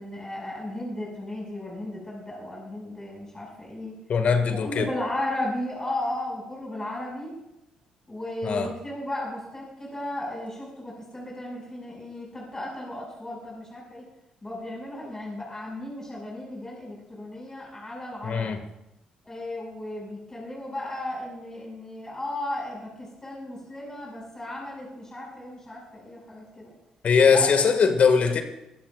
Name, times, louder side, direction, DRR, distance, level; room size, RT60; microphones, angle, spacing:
voice 1, 0.0-4.0 4.5-7.3 8.1-14.0 14.4-18.6 19.2-26.7 27.3-27.5, left 1 dB, 20° left, -3 dB, 5.7 m, -35 dB
voice 2, 4.1-4.9 8.4-8.7 18.2-18.6 27.0-28.4, left 5 dB, 50° left, 7 dB, 1.8 m, -21 dB
22.5 x 15.5 x 2.4 m, 0.88 s
hypercardioid pair, 45°, 3 cm